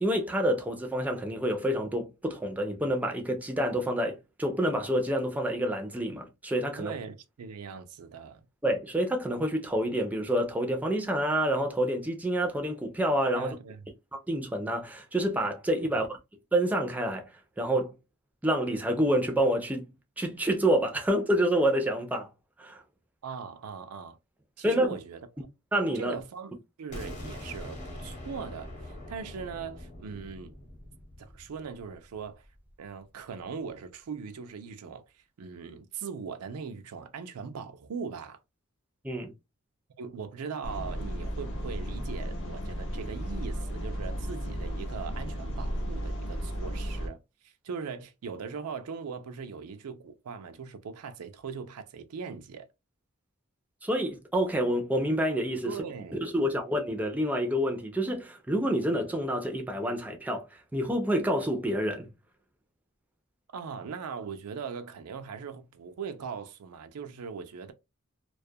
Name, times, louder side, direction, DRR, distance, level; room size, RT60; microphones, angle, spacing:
voice 1, 0.0-6.9 8.6-13.5 14.1-16.2 16.5-17.3 17.6-17.9 18.4-19.9 20.2-22.3 22.6-22.8 24.6-25.0 25.7-26.2 39.0-39.3 53.8-55.8 56.2-60.5 60.7-62.1, right 1 dB, 5° right, 0.4 m, -28 dB
voice 2, 6.8-8.5 13.3-13.8 23.2-24.2 24.6-25.2 25.9-30.5 31.2-32.5 32.8-38.4 40.0-52.7 55.6-56.2 63.5-67.7, right 6 dB, 80° right, 0.4 m, -40 dB
sound 1, 26.9-32.7, left 1 dB, 35° left, 0.9 m, -43 dB
sound 2, 40.6-47.1, equal, 60° left, 0.6 m, -34 dB
2.3 x 2.1 x 2.6 m
head